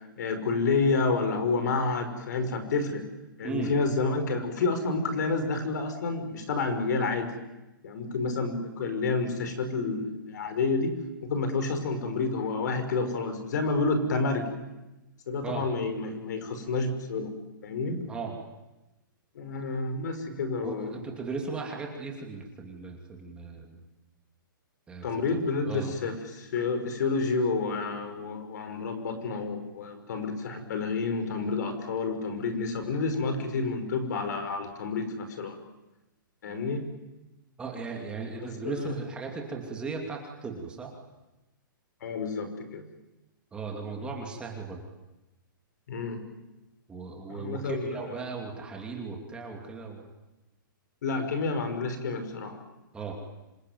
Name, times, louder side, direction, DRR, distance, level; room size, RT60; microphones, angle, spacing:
voice 1, 0.2-3.0 3.4-7.3 7.8-10.9 11.2-14.5 15.3-17.3 17.6-18.0 19.4-20.9 25.0-35.6 36.4-36.9 38.4-39.0 42.0-42.8 45.9-46.2 47.3-48.0 51.0-52.6, left 3 dB, 55° left, 8 dB, 5.4 m, -29 dB
voice 2, 20.6-23.8 24.9-25.4 25.6-25.9 37.6-40.9 43.5-44.8 46.9-50.0 52.9-53.1, right 4 dB, 10° right, 1 dB, 2.7 m, -37 dB
27.0 x 22.0 x 9.4 m, 1.0 s
hypercardioid pair, 165°, 12 cm